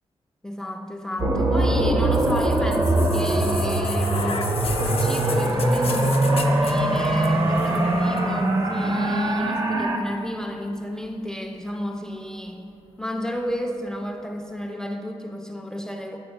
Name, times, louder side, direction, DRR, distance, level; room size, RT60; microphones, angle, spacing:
voice 1, 0.4-4.5 4.7-12.7 13.0-16.2, equal, 5° left, 3 dB, 0.4 m, -31 dB
sound 1, 1.2-10.0, right 1 dB, 35° right, 0.7 m, -22 dB
sound 2, 2.1-10.0 11.0-11.1, left 5 dB, 65° left, 0.5 m, -34 dB
7.9 x 4.2 x 5.2 m, 2.6 s
wide cardioid pair, 120°, 11 cm